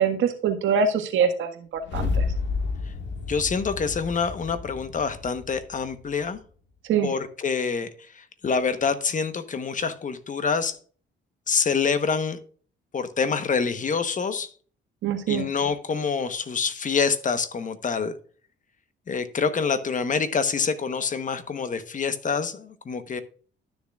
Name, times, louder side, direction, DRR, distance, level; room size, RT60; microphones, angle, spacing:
voice 1, 0.0-1.5 1.9-2.2 6.9-7.1 15.0-15.4, right 7 dB, 80° right, 6 dB, 1.6 m, -23 dB
sound 1, 1.8-6.1, left 4 dB, 65° left, 1.8 m, -30 dB
voice 2, 3.3-6.4 7.0-7.9 8.1-10.8 11.5-12.4 12.9-14.5 15.3-18.1 19.1-23.2, left 5 dB, 40° left, 11 dB, 1.1 m, -26 dB
12.5 x 7.0 x 2.4 m, 0.44 s
cardioid pair, 90°, 20 cm